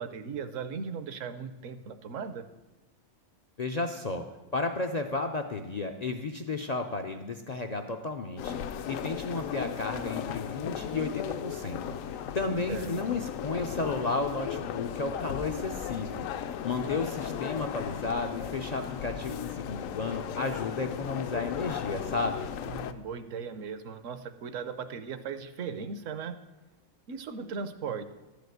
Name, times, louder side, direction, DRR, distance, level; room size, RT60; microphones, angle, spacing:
voice 1, 0.0-2.5 12.7-13.2 22.7-26.4 27.1-28.0, right 6 dB, 70° right, 11 dB, 1.1 m, -38 dB
voice 2, 3.6-4.3 4.5-16.3 16.6-22.5, left 3 dB, 60° left, 5 dB, 0.4 m, -33 dB
sound 1, 8.4-22.9, left 8 dB, 75° left, 1.0 m, -36 dB
12.0 x 5.1 x 7.9 m, 1.1 s
omnidirectional pair, 1.4 m